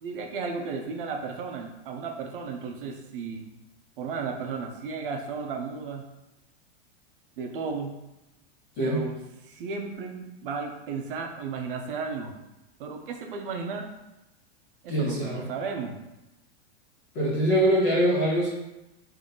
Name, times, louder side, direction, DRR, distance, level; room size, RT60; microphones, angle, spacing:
voice 1, 0.0-3.5 4.0-6.0 7.4-7.9 8.8-9.2 9.4-12.3 12.8-13.9 14.8-16.0, right 5 dB, 55° right, 3 dB, 0.6 m, -34 dB
voice 2, 14.9-15.4 17.1-18.5, equal, 15° left, -6 dB, 0.4 m, -23 dB
3.7 x 2.7 x 3.8 m, 0.96 s
supercardioid pair, 175°, 33 cm